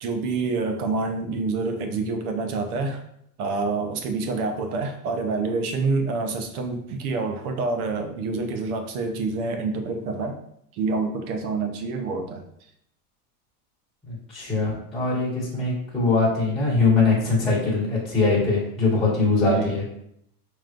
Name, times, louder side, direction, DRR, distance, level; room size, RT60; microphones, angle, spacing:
voice 1, 0.0-3.0 3.4-10.4 10.7-12.4 19.4-19.7, right 3 dB, 70° right, 5 dB, 0.8 m, -27 dB
voice 2, 14.1-19.8, left 3 dB, ahead, -7 dB, 1.1 m, -22 dB
5.0 x 3.1 x 2.5 m, 0.71 s
supercardioid pair, 160°, 47 cm